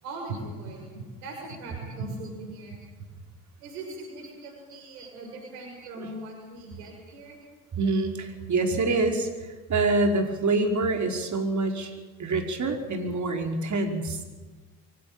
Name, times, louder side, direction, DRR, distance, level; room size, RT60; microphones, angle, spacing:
voice 1, 0.0-3.1 3.6-7.4, right 2 dB, 75° right, 1 dB, 6.5 m, -39 dB
voice 2, 7.8-9.3 9.7-11.9 12.2-14.2, right 3 dB, 40° right, 4 dB, 4.8 m, -26 dB
24.0 x 16.5 x 9.0 m, 1.3 s
hypercardioid pair, 65°, 46 cm